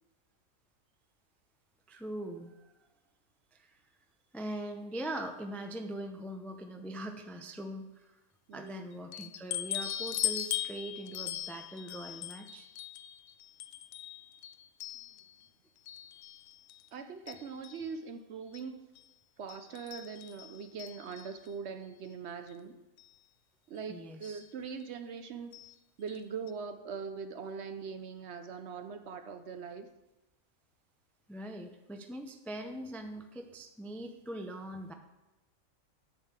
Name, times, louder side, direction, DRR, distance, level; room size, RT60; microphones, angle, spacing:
voice 1, 1.9-2.7 3.5-3.7 4.3-8.2 8.5-12.7 23.9-24.4 31.3-34.9, right 1 dB, ahead, 5 dB, 0.3 m, -42 dB
voice 2, 8.5-9.0 16.9-18.9 19.4-22.8 23.7-25.5 26.0-29.9, right 6 dB, 60° right, 8 dB, 0.8 m, -42 dB
sound 1, 9.1-15.5 15.9-16.9 17.3-17.8 18.5-18.6 19.0-19.1 19.5-21.5 22.5-22.6 23.0-23.1 24.2-24.4 25.5-25.7 26.1-26.2 26.5-26.6, left 12 dB, 85° left, 1.1 m, -40 dB
8.0 x 5.5 x 7.3 m, 1.0 s
omnidirectional pair, 1.5 m